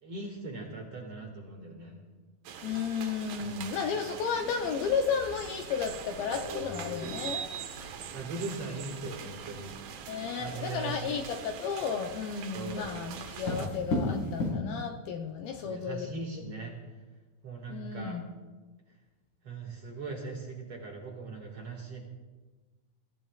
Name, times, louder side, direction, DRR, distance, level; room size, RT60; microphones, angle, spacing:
voice 1, 0.0-2.0 3.4-3.8 8.1-9.8 10.4-11.2 12.5-12.9 15.6-16.7 17.4-18.2 19.4-22.0, right 3 dB, 45° right, 0 dB, 2.3 m, -40 dB
sound 1, 2.5-13.7, right 8 dB, 70° right, 2.6 m, -43 dB
voice 2, 2.6-7.5 10.1-16.1 17.7-18.3, left 6 dB, 75° left, 4 dB, 2.3 m, -33 dB
sound 2, 4.1-14.5, left 2 dB, 45° left, 5.5 m, -40 dB
23.5 x 15.0 x 2.4 m, 1.3 s
omnidirectional pair, 4.7 m